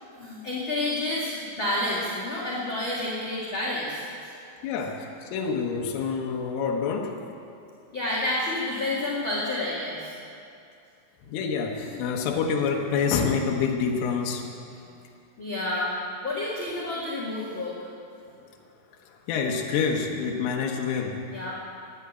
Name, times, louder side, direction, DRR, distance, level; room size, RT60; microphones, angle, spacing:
voice 1, 0.1-4.3 7.9-10.2 11.8-11.9 15.4-15.9 16.2-17.8 21.3-21.5, left 1 dB, 55° left, -6 dB, 1.4 m, -29 dB
voice 2, 4.6-7.2 11.3-14.5 18.4-18.5 19.3-21.2, left 5 dB, 80° left, 0 dB, 3.7 m, -27 dB
13.5 x 10.0 x 8.2 m, 2.6 s
omnidirectional pair, 5.7 m